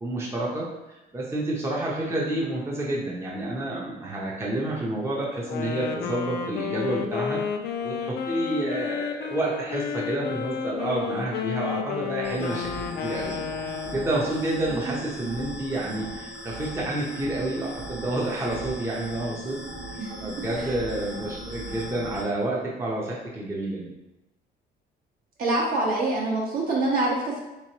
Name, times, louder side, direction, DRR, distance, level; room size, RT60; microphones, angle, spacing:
voice 1, 0.0-7.4 7.8-19.6 19.9-23.9, right 1 dB, 15° right, -4 dB, 0.7 m, -29 dB
Wind instrument woodwind instrument, 5.4-14.3, left 7 dB, 70° left, 0.4 m, -32 dB
sound 1, 12.2-22.2, right 1 dB, 30° right, 1.2 m, -38 dB
voice 2, 25.4-27.4, right 2 dB, 60° right, -3 dB, 1.1 m, -25 dB
3.5 x 3.0 x 2.9 m, 0.95 s
cardioid pair, 110°, 17 cm